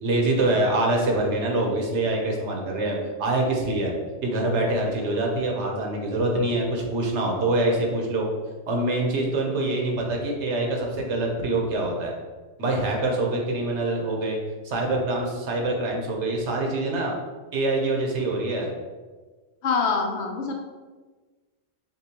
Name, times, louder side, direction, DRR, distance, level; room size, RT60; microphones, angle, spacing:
voice 1, 0.0-3.9 4.2-8.3 8.7-12.1 12.6-14.4 14.6-17.1 17.5-18.7, right 2 dB, 85° right, 0 dB, 1.1 m, -25 dB
voice 2, 19.6-20.5, left 5 dB, 85° left, 2 dB, 1.0 m, -25 dB
6.7 x 2.3 x 2.9 m, 1.3 s
omnidirectional pair, 1.1 m